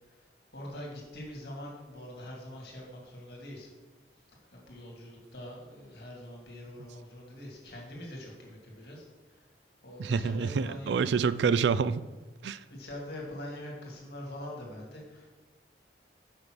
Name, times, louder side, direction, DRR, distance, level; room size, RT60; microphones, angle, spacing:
voice 1, 0.5-3.7 4.5-9.0 9.8-11.0 12.7-15.3, left 1 dB, 65° left, -2 dB, 2.1 m, -43 dB
voice 2, 10.0-12.1 12.4-12.6, right 5 dB, 75° right, 16 dB, 0.3 m, -27 dB
6.6 x 5.2 x 6.2 m, 1.2 s
head